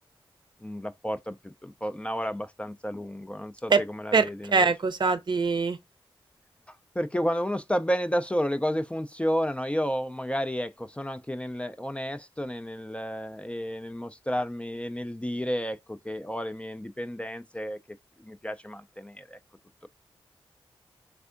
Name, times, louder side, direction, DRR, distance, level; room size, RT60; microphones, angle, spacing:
voice 1, 0.6-4.7 6.7-17.8 18.2-19.4, equal, 10° left, 0.4 m, -31 dB
voice 2, 4.1-5.8, right 4 dB, 50° right, 0.6 m, -23 dB
3.5 x 3.3 x 2.5 m
cardioid pair, 40°, 10 cm